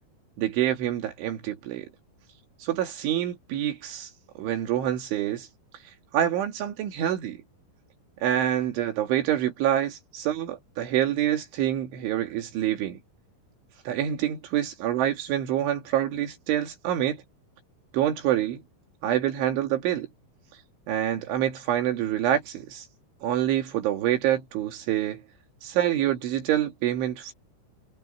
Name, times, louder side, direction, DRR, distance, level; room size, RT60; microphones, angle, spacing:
voice 1, 0.4-1.9 2.6-4.1 4.4-5.5 6.1-7.4 8.2-13.0 13.9-17.2 17.9-18.6 19.0-20.1 20.9-22.9 23.2-25.2 25.6-27.3, right 11 dB, 75° right, 4.6 m, -26 dB
omnidirectional pair, 5.6 m